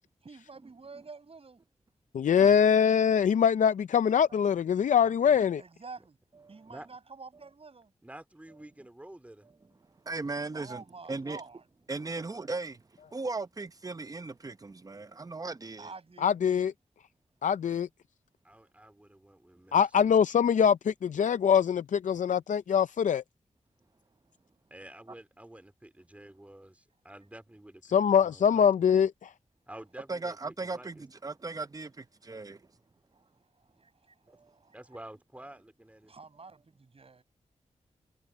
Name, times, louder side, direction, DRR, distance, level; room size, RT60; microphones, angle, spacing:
voice 1, 0.2-1.6 4.3-5.0 5.6-6.2 6.5-7.9 10.5-11.7 15.8-16.4 33.1-35.0 36.1-37.2, right 4 dB, 50° right, 7.4 m, -49 dB
voice 2, 2.1-5.6 16.2-16.7 17.4-17.9 19.7-23.2 27.9-29.3, left 7 dB, 85° left, 0.5 m, -23 dB
voice 3, 5.0-5.4 6.7-6.9 8.0-9.5 12.2-12.3 18.4-20.2 24.7-28.9 29.7-31.0 34.2-34.4 34.7-36.1, right 1 dB, 10° right, 3.1 m, -50 dB
voice 4, 10.1-10.8 11.1-11.4 11.9-12.8 13.1-15.9 30.1-32.7 34.3-34.5, right 3 dB, 30° right, 0.7 m, -37 dB
wide cardioid pair, 100°, 13 cm